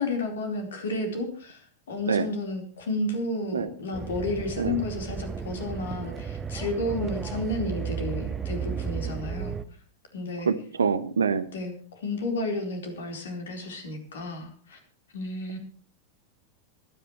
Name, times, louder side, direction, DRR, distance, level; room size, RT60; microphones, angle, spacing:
voice 1, 0.0-9.6 10.1-10.5 11.5-14.8 15.1-15.6, left 2 dB, 65° left, 4 dB, 4.3 m, -32 dB
sound 1, 3.9-9.6, right 7 dB, 20° right, 0.9 m, -34 dB
voice 2, 10.5-11.4, right 5 dB, 70° right, 14 dB, 1.2 m, -25 dB
26.0 x 10.5 x 3.2 m, 0.43 s
figure-of-eight pair, 90°, 0 cm